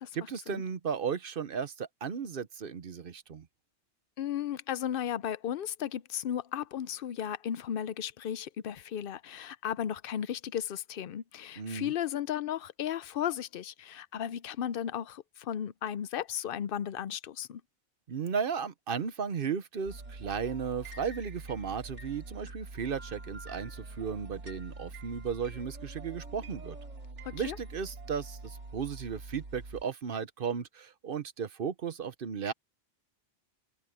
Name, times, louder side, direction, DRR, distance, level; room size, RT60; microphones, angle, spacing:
voice 1, 0.1-3.5 11.6-11.9 18.1-26.8 27.3-32.5, right 6 dB, 55° right, 1.0 m, -35 dB
voice 2, 4.2-17.6 27.2-27.6, left 9 dB, 60° left, 0.7 m, -35 dB
sound 1, 19.9-29.8, right 2 dB, 80° right, 3.2 m, -45 dB
omnidirectional pair, 1.2 m